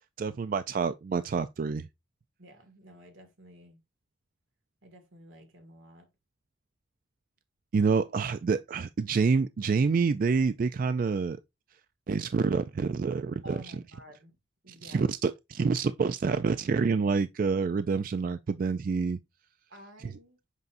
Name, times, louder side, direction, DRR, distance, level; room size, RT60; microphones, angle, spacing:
voice 1, 0.2-1.8 7.7-11.4 12.1-13.6 14.8-19.2, right 5 dB, 45° right, 0.3 m, -27 dB
voice 2, 2.4-3.8 4.8-6.1 13.4-14.4 14.6-15.1 19.7-20.4, equal, 85° right, 2.2 m, -51 dB
8.1 x 5.3 x 2.6 m
head